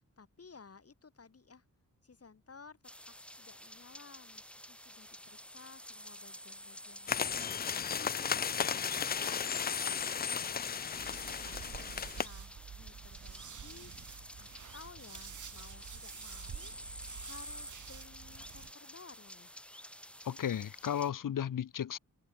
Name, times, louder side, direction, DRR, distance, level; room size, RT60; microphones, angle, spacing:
voice 1, 0.0-1.7 2.0-2.8 3.1-13.9 14.4-16.7 17.2-19.5, left 5 dB, 45° left, 7.2 m, -57 dB
sound 1, 2.8-21.1, equal, 5° left, 6.5 m, -51 dB
sound 2, 7.1-12.3, left 7 dB, 30° left, 0.4 m, -34 dB
sound 3, 10.9-18.7, right 7 dB, 65° right, 2.8 m, -48 dB
voice 2, 20.2-22.0, left 9 dB, 80° left, 1.2 m, -34 dB
open air
wide cardioid pair, 100°, 32 cm